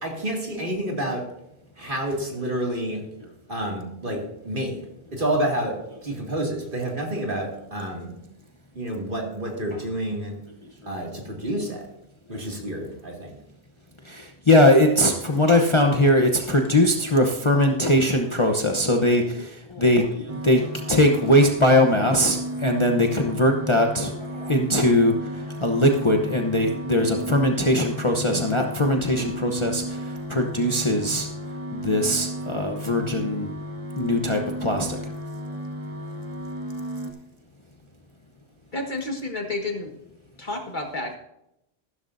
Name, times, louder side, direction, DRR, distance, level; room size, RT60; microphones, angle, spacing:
voice 1, 0.0-1.3 1.8-3.0 3.5-4.8 5.1-8.2 8.8-10.4 10.9-11.9 12.3-13.4, right 1 dB, 50° right, -1 dB, 2.6 m, -29 dB
voice 2, 10.6-11.3 12.3-12.5 14.0-33.5 33.9-35.1, left 1 dB, 30° left, 2 dB, 0.9 m, -21 dB
sound 1, 20.3-37.1, right 1 dB, 35° right, 1.2 m, -34 dB
voice 3, 38.7-39.9 40.4-41.2, left 2 dB, 45° left, 2 dB, 1.7 m, -30 dB
14.5 x 12.5 x 2.7 m, 0.83 s
omnidirectional pair, 1.1 m